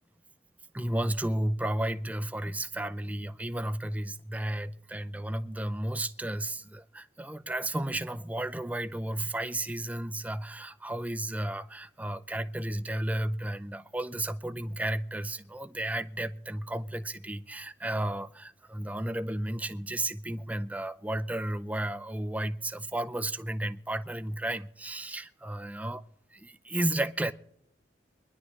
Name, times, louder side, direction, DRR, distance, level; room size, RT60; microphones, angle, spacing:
voice 1, 0.7-26.0 26.3-27.3, right 1 dB, 10° right, 0.5 m, -33 dB
24.0 x 11.0 x 3.2 m
head